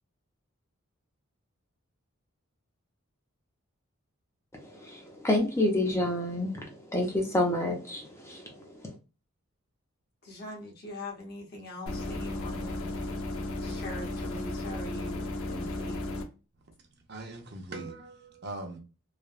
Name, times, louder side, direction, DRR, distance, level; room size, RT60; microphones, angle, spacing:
voice 1, 4.5-8.9, left 1 dB, 10° left, 0.5 m, -29 dB
voice 2, 10.2-12.9 13.6-16.0, left 1 dB, 45° left, 0.9 m, -42 dB
sound 1, 11.9-16.3, left 2 dB, 80° left, 0.6 m, -34 dB
voice 3, 17.1-18.8, right 2 dB, 50° right, 0.6 m, -40 dB
3.2 x 2.2 x 2.4 m
head